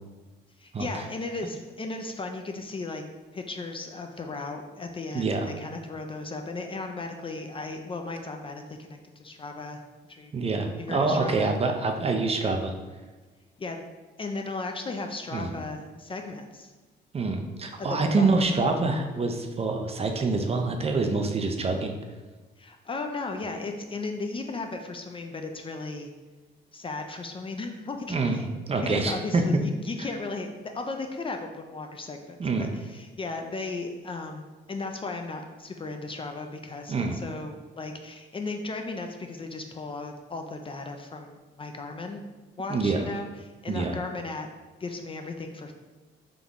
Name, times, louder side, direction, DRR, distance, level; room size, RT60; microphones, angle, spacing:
voice 1, 0.6-3.0 3.3-10.3 10.8-11.5 13.6-13.8 14.2-16.7 17.8-18.3 22.6-26.1 26.7-28.2 28.8-42.2 42.6-43.3 43.6-44.5 44.8-45.7, left 3 dB, 25° left, 4 dB, 0.4 m, -36 dB
voice 2, 5.1-5.5 10.3-12.7 15.3-15.6 17.1-21.9 28.1-29.4 32.4-32.8 36.9-37.2 42.7-43.0 43.7-44.0, right 3 dB, 30° right, 4 dB, 0.5 m, -26 dB
3.8 x 2.9 x 3.6 m, 1.3 s
cardioid pair, 90°, 20 cm